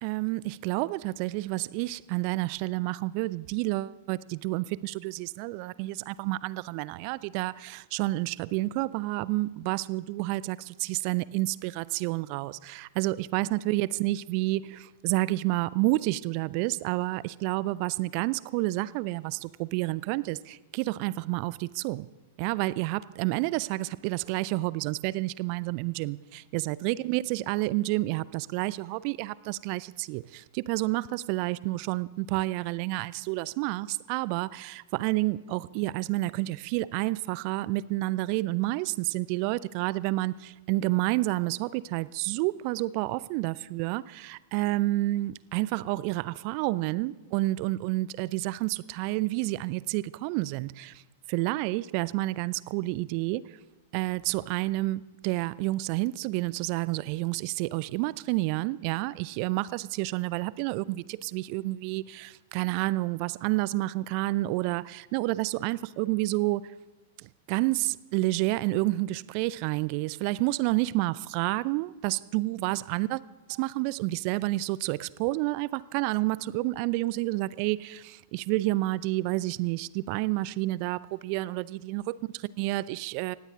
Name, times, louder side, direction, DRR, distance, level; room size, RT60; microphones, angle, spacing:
voice 1, 0.0-22.1 22.4-51.0 51.3-53.6 53.9-66.7 67.2-73.2 73.5-83.3, right 19 dB, 45° right, 20 dB, 0.5 m, -29 dB
19.0 x 16.5 x 3.7 m, 1.1 s
figure-of-eight pair, 100°, 0 cm